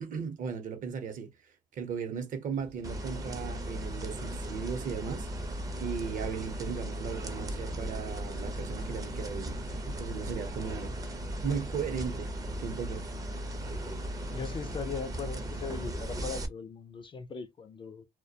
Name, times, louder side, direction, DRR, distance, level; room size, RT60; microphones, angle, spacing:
voice 1, 0.0-1.3 1.7-5.3 5.8-9.6 9.9-11.0 11.4-12.3 12.6-13.1, right 6 dB, 50° right, 0.7 m, -36 dB
sound 1, 2.5-16.3, right 5 dB, 80° right, 0.8 m, -53 dB
sound 2, 2.8-16.5, right 1 dB, 20° right, 0.5 m, -37 dB
voice 2, 14.3-18.1, left 5 dB, 30° left, 0.4 m, -39 dB
2.3 x 2.1 x 2.6 m
cardioid pair, 110°, 17 cm